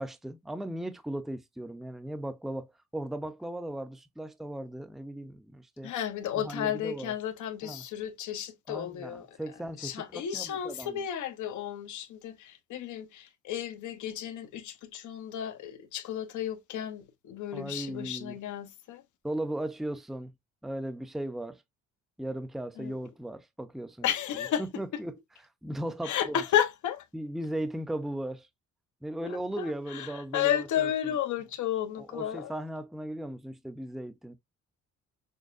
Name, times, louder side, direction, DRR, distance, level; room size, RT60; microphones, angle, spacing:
voice 1, 0.0-5.9 6.3-7.1 7.6-7.8 8.7-11.0 17.5-18.4 19.2-20.3 20.6-21.6 22.2-24.1 24.6-25.2 25.6-26.4 27.1-28.5 29.0-30.5 30.8-30.9 32.0-34.3, right 1 dB, ahead, 0.6 m, -37 dB
voice 2, 5.8-9.4 9.8-19.0 22.8-22.9 24.0-24.6 26.0-27.0 29.2-32.5, left 10 dB, 75° left, 1.1 m, -33 dB
6.3 x 2.2 x 2.5 m
cardioid pair, 90°, 30 cm